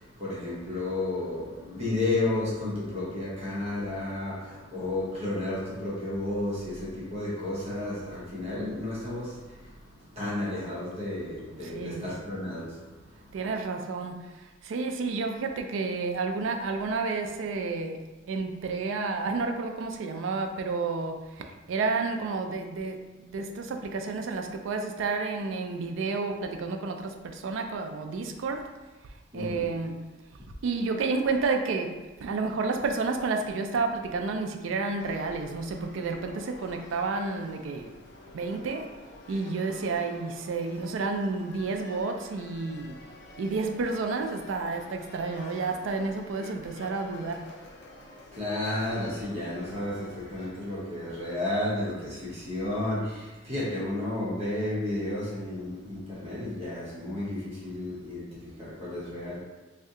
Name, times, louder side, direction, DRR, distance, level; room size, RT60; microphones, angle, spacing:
voice 1, 0.0-13.4 29.3-29.7 48.3-59.4, left 2 dB, 30° right, -7 dB, 0.8 m, -32 dB
voice 2, 11.6-12.1 13.3-28.7 29.3-30.1 30.6-37.9 38.3-38.9 39.3-43.0 43.4-47.5, right 4 dB, 70° right, 5 dB, 0.3 m, -31 dB
sound 1, 35.0-50.5, left 2 dB, 55° left, 0.4 m, -49 dB
2.7 x 2.2 x 3.6 m, 1.2 s
head